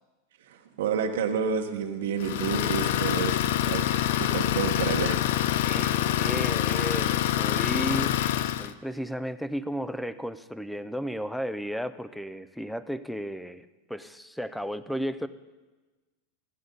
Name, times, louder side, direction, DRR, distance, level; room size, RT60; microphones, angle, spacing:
voice 1, 0.5-3.4 3.7-5.4, right 6 dB, 85° right, 5 dB, 1.2 m, -30 dB
Idling, 2.2-8.7, left 12 dB, 70° left, 0.4 m, -26 dB
voice 2, 5.7-15.3, equal, ahead, 13 dB, 0.4 m, -34 dB
15.0 x 9.5 x 3.9 m, 1.2 s
supercardioid pair, 145°, 0 cm